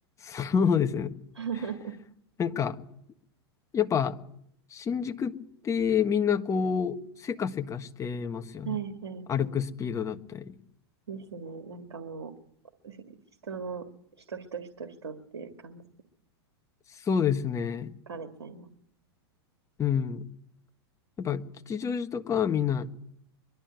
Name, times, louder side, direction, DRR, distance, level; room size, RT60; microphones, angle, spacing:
voice 1, 0.2-1.1 2.4-2.8 3.7-4.2 4.7-5.3 5.6-8.8 9.3-10.5 17.0-17.9 19.8-20.2 21.2-22.9, left 7 dB, 20° left, 6 dB, 1.4 m, -28 dB
voice 2, 1.4-1.9 8.6-9.6 11.1-12.3 12.8-13.2 13.4-13.8 14.2-15.8 18.1-18.7, right 6 dB, 90° right, 6 dB, 1.9 m, -38 dB
22.5 x 12.5 x 9.4 m, 0.72 s
hypercardioid pair, 110°, 14 cm